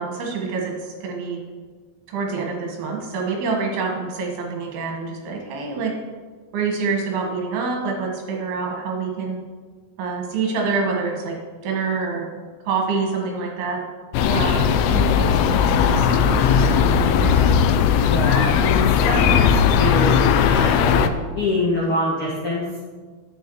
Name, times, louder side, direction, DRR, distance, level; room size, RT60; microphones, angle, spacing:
voice 1, 0.0-1.4 2.1-5.9 6.5-9.4 10.0-11.4 11.6-12.3 12.7-13.8 14.3-17.5, right 4 dB, 70° right, 0 dB, 3.4 m, -26 dB
sound 1, 14.1-21.1, left 7 dB, 90° left, 2.2 m, -17 dB
voice 2, 14.2-14.6 18.1-20.2 20.4-21.1 21.4-22.6, left 1 dB, 60° left, -6 dB, 1.4 m, -25 dB
10.5 x 8.1 x 4.7 m, 1.5 s
omnidirectional pair, 5.0 m